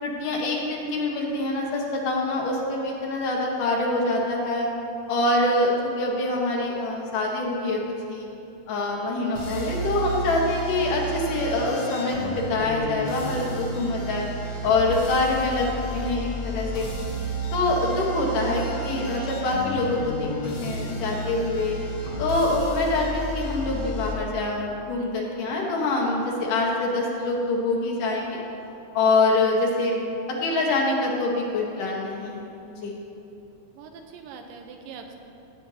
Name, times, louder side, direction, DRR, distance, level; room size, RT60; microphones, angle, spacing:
voice 1, 0.0-4.7 5.1-7.8 8.1-8.3 8.7-14.3 14.6-16.9 17.5-21.8 22.2-28.4 28.9-29.9 30.3-32.4 32.8-32.9, left 2 dB, 75° left, -2 dB, 3.0 m, -25 dB
sound 1, 9.4-24.2, right 1 dB, 55° left, 1.6 m, -32 dB
voice 2, 33.8-35.2, right 6 dB, 85° right, 4 dB, 2.5 m, -42 dB
17.5 x 8.9 x 2.9 m, 2.9 s
omnidirectional pair, 3.8 m